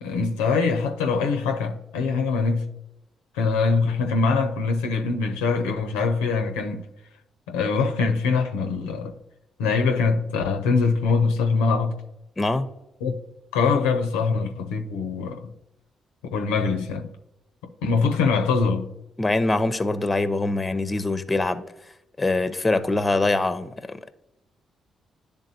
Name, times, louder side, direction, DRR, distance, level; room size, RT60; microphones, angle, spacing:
voice 1, 0.0-2.7 3.3-6.8 7.5-9.1 9.6-12.0 13.0-13.2 13.5-15.5 16.3-17.1 17.8-18.9, left 4 dB, 85° left, 0.5 m, -23 dB
voice 2, 12.4-12.7 19.2-21.6 22.2-24.1, left 2 dB, 25° left, 0.6 m, -23 dB
10.5 x 3.5 x 2.7 m
hypercardioid pair, 45°, 0 cm